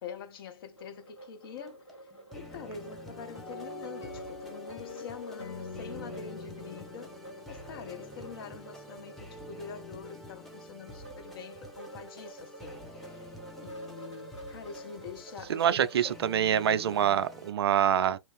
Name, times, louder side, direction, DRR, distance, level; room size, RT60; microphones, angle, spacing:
voice 1, 0.0-1.8 2.4-7.2 7.5-13.3 13.6-16.1 16.8-17.1, left 6 dB, 50° left, 0.9 m, -45 dB
sound 1, 0.8-17.5, right 2 dB, 90° left, 1.6 m, -49 dB
sound 2, 1.6-17.5, left 1 dB, ahead, 0.7 m, -48 dB
sound 3, 3.4-8.5, left 4 dB, 70° left, 1.1 m, -44 dB
voice 2, 15.5-18.2, right 9 dB, 60° right, 0.4 m, -25 dB
2.9 x 2.5 x 3.3 m
figure-of-eight pair, 110°, 15 cm